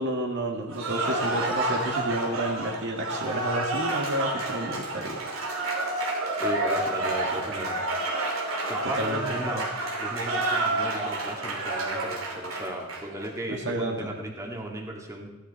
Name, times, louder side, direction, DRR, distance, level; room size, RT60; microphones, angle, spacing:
voice 1, 0.0-5.2 9.0-9.2 13.5-14.1, right 1 dB, 60° right, 2 dB, 1.9 m, -30 dB
Cheering / Applause, 0.7-13.3, right 2 dB, 85° right, 3.0 m, -29 dB
voice 2, 6.4-7.8 8.7-9.7 10.0-15.3, right 1 dB, 15° right, 0 dB, 1.9 m, -35 dB
15.5 x 11.5 x 4.2 m, 1.2 s
head